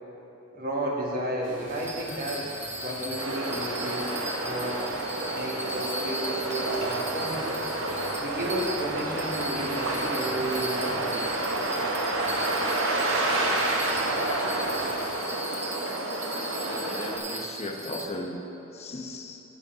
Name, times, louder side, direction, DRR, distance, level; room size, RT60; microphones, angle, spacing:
voice 1, 0.5-2.4 2.8-4.1 4.4-4.9 5.3-7.6 8.2-11.3, right 1 dB, 50° right, -3 dB, 1.6 m, -32 dB
sound 1, 1.4-15.2, right 1 dB, 70° right, 2.2 m, -45 dB
Bell, 1.7-18.1, right 1 dB, 10° right, 1.1 m, -38 dB
sound 2, 3.2-17.2, right 2 dB, 85° right, 1.1 m, -29 dB
voice 2, 16.6-18.4 18.7-19.4, left 1 dB, 35° left, 2 dB, 0.8 m, -36 dB
9.9 x 7.0 x 5.5 m, 3.0 s
head